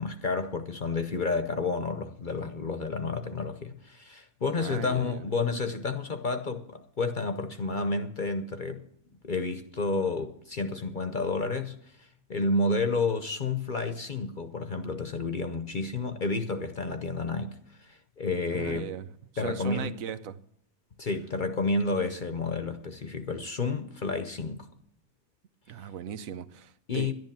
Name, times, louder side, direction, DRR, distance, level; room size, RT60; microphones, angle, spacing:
voice 1, 0.0-8.9 9.2-18.9 19.4-19.9 21.0-24.7 26.9-27.1, left 3 dB, 45° left, 0.8 m, -30 dB
voice 2, 4.6-5.2 18.5-20.4 25.7-27.1, right 8 dB, 85° right, 1.2 m, -38 dB
11.0 x 10.5 x 7.3 m
omnidirectional pair, 1.4 m